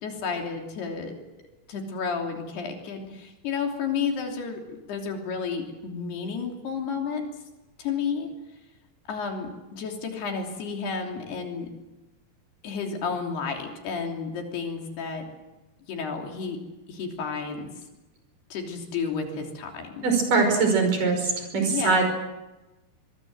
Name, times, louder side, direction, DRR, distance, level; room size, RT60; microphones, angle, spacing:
voice 1, 0.0-1.2 1.7-7.2 7.8-8.3 9.1-11.7 12.6-15.3 15.9-16.6 16.9-17.7 18.5-20.1 21.6-22.0, left 5 dB, 90° left, 2 dB, 5.2 m, -31 dB
voice 2, 20.0-22.0, right 4 dB, 55° right, 4 dB, 6.8 m, -22 dB
24.0 x 23.0 x 7.8 m, 1.0 s
omnidirectional pair, 4.5 m